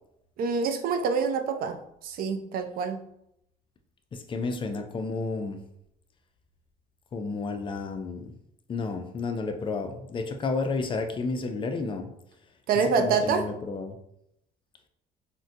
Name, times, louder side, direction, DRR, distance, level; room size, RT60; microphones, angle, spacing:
voice 1, 0.4-3.1 12.7-13.4, right 5 dB, 60° right, 7 dB, 0.4 m, -26 dB
voice 2, 4.1-5.6 7.1-8.3 8.7-12.1 13.0-14.0, left 3 dB, 30° left, 6 dB, 0.4 m, -31 dB
3.8 x 2.1 x 2.6 m, 0.78 s
cardioid pair, 110°, 17 cm